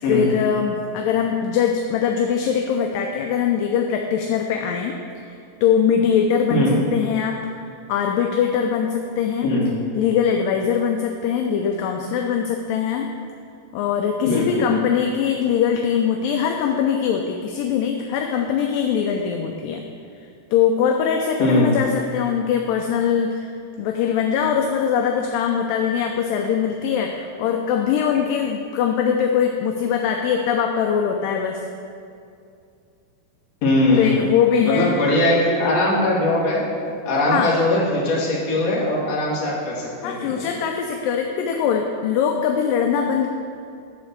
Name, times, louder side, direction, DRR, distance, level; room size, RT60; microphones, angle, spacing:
voice 1, 0.1-5.0 5.3-7.4 7.9-9.5 10.0-13.1 13.7-19.8 20.5-23.5 23.8-31.6 34.0-34.9 37.3-37.5 40.0-43.3, left 7 dB, 80° left, 2 dB, 2.1 m, -22 dB
voice 2, 9.4-9.7 14.3-14.7 21.4-21.7 33.6-34.3 34.6-36.6 37.0-40.3, left 2 dB, 50° left, -5 dB, 2.6 m, -20 dB
11.5 x 4.2 x 6.7 m, 2.4 s
omnidirectional pair, 4.3 m